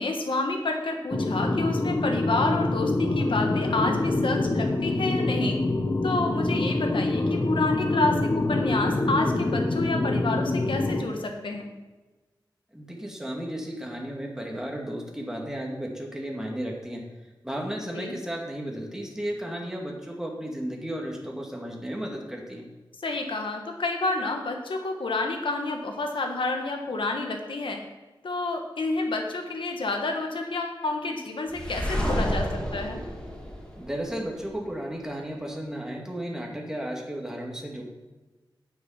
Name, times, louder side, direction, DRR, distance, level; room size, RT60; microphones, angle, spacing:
voice 1, 0.0-5.6 6.0-11.7 17.9-18.1 23.0-27.8 28.2-33.0, left 3 dB, 75° left, 3 dB, 1.4 m, -29 dB
sound 1, 1.1-11.0, left 2 dB, 45° left, 1.1 m, -26 dB
voice 2, 12.7-17.0 17.4-22.7 33.8-37.8, equal, 5° right, 0 dB, 2.1 m, -34 dB
sound 2, 31.5-34.5, equal, 10° left, 2.3 m, -30 dB
8.4 x 6.6 x 5.8 m, 1.2 s
wide cardioid pair, 60°, 9 cm